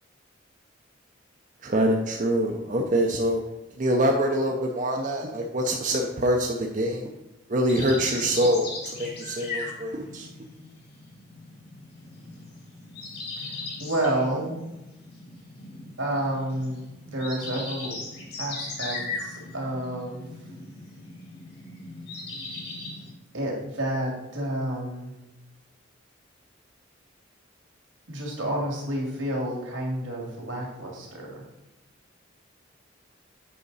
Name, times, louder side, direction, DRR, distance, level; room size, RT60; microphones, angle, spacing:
voice 1, 1.6-3.4 3.7-7.1 7.5-10.3, equal, 40° right, 1 dB, 0.6 m, -25 dB
sound 1, 7.7-23.1, left 3 dB, 55° left, 1.9 m, -38 dB
voice 2, 13.8-14.6 16.0-18.0 18.4-20.2 23.3-25.1 28.1-31.4, right 1 dB, 85° right, -2 dB, 2.5 m, -30 dB
8.3 x 5.0 x 4.1 m, 0.97 s
head